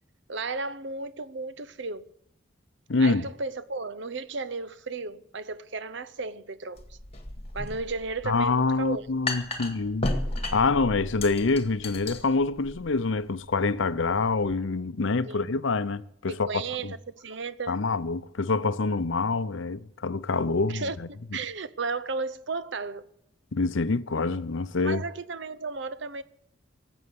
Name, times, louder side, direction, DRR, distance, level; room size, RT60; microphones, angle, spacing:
voice 1, 0.3-2.1 3.0-7.0 7.5-9.1 15.3-15.5 16.5-17.8 20.7-21.0 21.3-23.1 24.8-26.2, right 4 dB, 55° right, 0.7 m, -34 dB
voice 2, 2.9-3.3 8.2-10.1 10.5-16.9 17.7-21.1 23.5-25.0, left 3 dB, 65° left, 0.7 m, -26 dB
sound 1, 6.8-14.5, left 2 dB, 30° left, 1.8 m, -35 dB
18.0 x 8.0 x 9.7 m
head